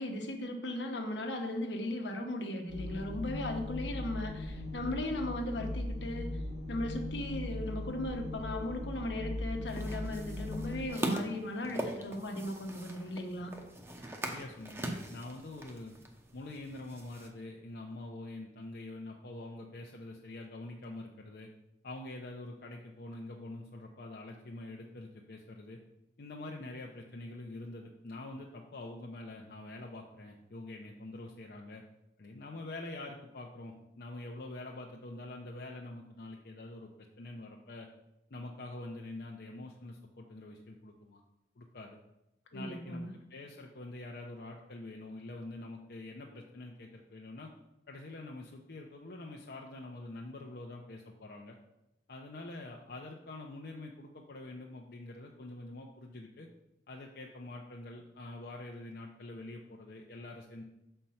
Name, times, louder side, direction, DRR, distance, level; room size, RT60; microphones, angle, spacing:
voice 1, 0.0-6.3 6.7-13.5 42.5-43.1, left 1 dB, 75° left, 3 dB, 1.1 m, -37 dB
sound 1, 2.7-10.9, left 1 dB, 80° right, 1.9 m, -39 dB
sound 2, 9.7-17.3, right 1 dB, 15° right, 0.8 m, -41 dB
voice 2, 14.2-15.9 16.3-21.5 21.8-25.8 26.2-31.8 32.2-36.9 37.2-37.9 38.3-41.2 41.6-42.0 42.5-47.5 47.9-51.6 52.1-56.5 56.9-60.6, left 2 dB, 60° left, 0 dB, 0.7 m, -45 dB
6.4 x 4.5 x 5.6 m, 0.89 s
head